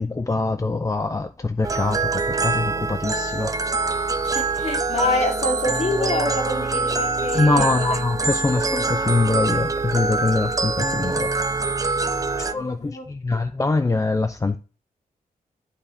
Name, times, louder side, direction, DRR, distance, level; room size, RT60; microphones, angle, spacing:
voice 1, 0.0-3.5 7.3-11.3 12.5-14.6, left 3 dB, 20° left, 0.6 m, -23 dB
sound 1, 1.6-12.5, right 3 dB, 25° right, 0.7 m, -24 dB
voice 2, 4.2-8.0 8.5-8.6 12.3-13.1, left 2 dB, 45° left, 3.3 m, -27 dB
11.5 x 5.4 x 6.8 m
wide cardioid pair, 125°, 15 cm